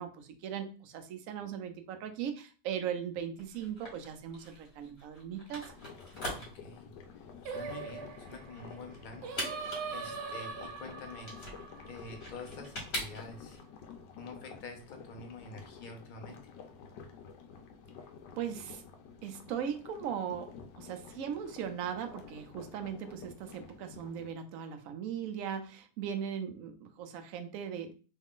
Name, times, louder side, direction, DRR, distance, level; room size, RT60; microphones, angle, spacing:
voice 1, 0.0-5.7 18.4-18.8 19.2-27.9, right 8 dB, 70° right, 7 dB, 0.8 m, -38 dB
sound 1, 3.4-13.6, left 1 dB, 40° left, 1.4 m, -43 dB
sound 2, 5.7-24.3, left 6 dB, 80° left, 1.2 m, -51 dB
voice 2, 6.3-9.4 9.9-11.4 11.9-13.6 14.2-16.4, left 3 dB, 55° left, 3 dB, 0.5 m, -47 dB
Singing, 7.4-12.7, right 5 dB, 85° right, 1.3 m, -42 dB
3.2 x 2.4 x 3.6 m, 0.36 s
omnidirectional pair, 1.9 m